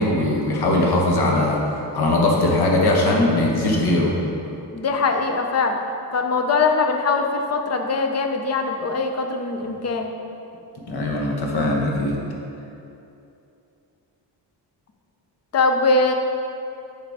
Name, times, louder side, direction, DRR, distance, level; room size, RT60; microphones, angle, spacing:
voice 1, 0.0-4.2 10.9-12.2, left 2 dB, 60° left, -1 dB, 1.3 m, -20 dB
voice 2, 4.7-5.8 6.1-10.1 15.5-16.1, left 3 dB, 35° left, 4 dB, 0.6 m, -21 dB
6.6 x 5.3 x 4.7 m, 2.7 s
wide cardioid pair, 165°, 44 cm